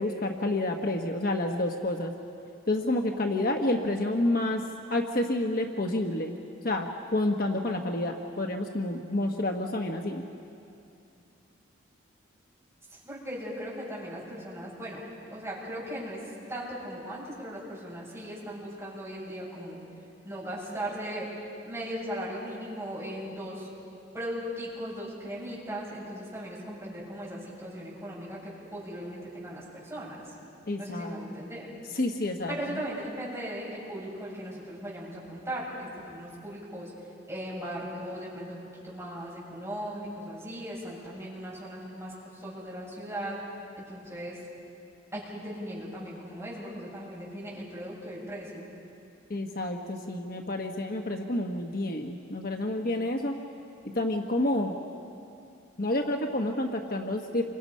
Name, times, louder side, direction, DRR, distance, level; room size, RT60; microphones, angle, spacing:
voice 1, 0.0-2.1 2.7-4.6 4.9-6.4 6.6-10.2 30.7-31.2 31.9-32.8 49.3-53.4 53.9-54.8 55.8-57.4, left 1 dB, 50° left, 3 dB, 1.2 m, -29 dB
voice 2, 12.9-15.0 15.3-16.2 16.5-19.8 20.2-21.3 21.6-23.7 24.1-30.2 30.8-31.7 32.5-36.9 37.3-43.4 43.9-44.4 45.1-48.7, equal, 15° right, -7 dB, 7.4 m, -38 dB
28.5 x 25.5 x 5.6 m, 2.7 s
head